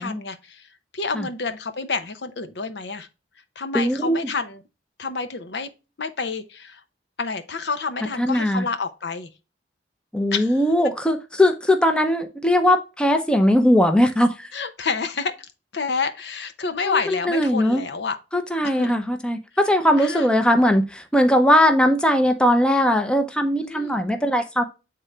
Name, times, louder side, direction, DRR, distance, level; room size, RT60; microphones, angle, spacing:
voice 1, 0.0-3.1 3.6-4.6 5.0-5.7 6.0-6.8 7.2-9.3 10.3-10.6 14.5-18.2 18.6-19.0 20.0-20.3 23.6-24.0, left 4 dB, 75° left, 0.8 m, -29 dB
voice 2, 3.7-4.2 8.2-8.7 10.1-14.5 16.8-17.8 18.3-24.6, equal, 5° left, 0.6 m, -19 dB
7.8 x 3.8 x 3.2 m
head